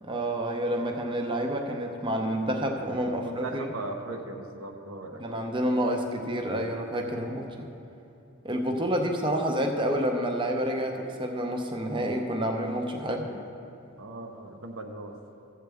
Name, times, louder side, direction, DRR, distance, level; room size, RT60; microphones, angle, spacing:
voice 1, 0.0-3.7 5.2-7.7 8.4-13.2, equal, 25° right, 3 dB, 0.7 m, -29 dB
voice 2, 3.2-5.2 8.8-9.0 13.0-13.4 14.0-15.1, right 2 dB, 90° right, 3 dB, 0.9 m, -39 dB
14.5 x 7.7 x 3.5 m, 2.7 s
head